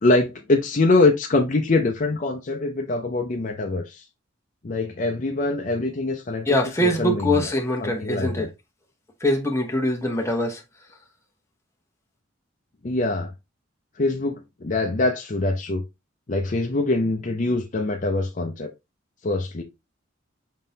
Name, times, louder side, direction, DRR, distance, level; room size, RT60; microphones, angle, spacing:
voice 1, 0.0-4.0 4.6-6.5 6.8-7.5 7.8-8.5 12.8-13.3 14.0-15.8 16.3-18.7 19.2-19.6, left 2 dB, 40° left, 0.6 m, -23 dB
voice 2, 6.5-8.5 9.2-10.6, left 1 dB, 15° left, 0.9 m, -23 dB
5.1 x 3.8 x 2.7 m
head